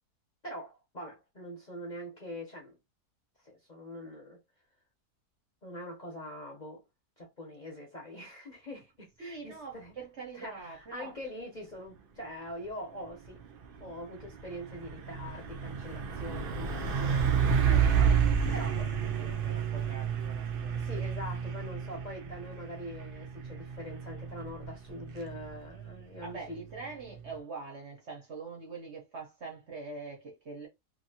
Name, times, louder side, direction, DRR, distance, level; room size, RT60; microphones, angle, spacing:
voice 1, 0.4-2.8 3.4-4.4 5.6-6.8 7.2-9.9 10.3-13.4 13.8-17.3 17.9-18.8 20.7-26.6, equal, 35° left, 0.8 m, -43 dB
voice 2, 9.2-11.1 17.6-18.3 18.5-18.6 19.1-21.1 26.2-30.7, right 4 dB, 50° right, 1.1 m, -44 dB
Truck, 13.1-27.4, right 7 dB, 75° right, 0.5 m, -31 dB
2.8 x 2.6 x 2.8 m
omnidirectional pair, 1.7 m